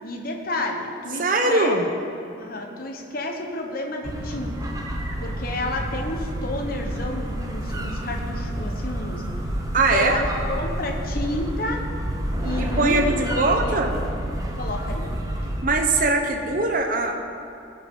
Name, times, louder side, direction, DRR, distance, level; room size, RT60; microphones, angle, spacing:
voice 1, 0.0-1.7 2.4-4.7 5.2-9.2 9.9-11.8 12.4-14.0 14.6-15.1, left 1 dB, 50° left, 2 dB, 1.2 m, -30 dB
voice 2, 1.2-1.9 9.7-10.2 12.6-13.9 15.6-17.1, right 3 dB, 45° right, 3 dB, 0.7 m, -21 dB
sound 1, 4.0-15.6, right 1 dB, 20° right, 0.9 m, -29 dB
18.5 x 6.6 x 3.8 m, 2.8 s
head